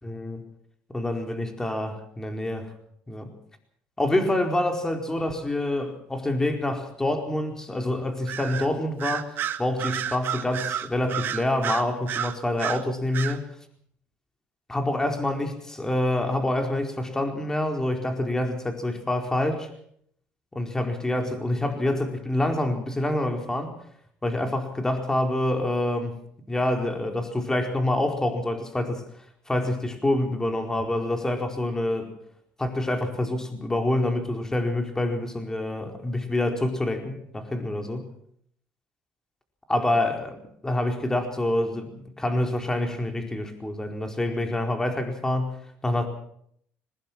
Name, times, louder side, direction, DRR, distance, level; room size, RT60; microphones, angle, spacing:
voice 1, 0.0-0.4 0.9-2.7 3.1-3.3 4.0-13.4 14.7-19.7 20.5-23.7 24.2-26.2 26.5-29.0 29.5-32.1 32.6-38.1 39.7-46.1, left 1 dB, 15° left, 4 dB, 4.5 m, -27 dB
Bird vocalization bird call bird song, 8.3-8.7 9.0-12.8 13.1-13.4, right 10 dB, 55° right, 1.8 m, -30 dB
22.0 x 20.5 x 6.1 m, 0.66 s
cardioid pair, 100°, 4 cm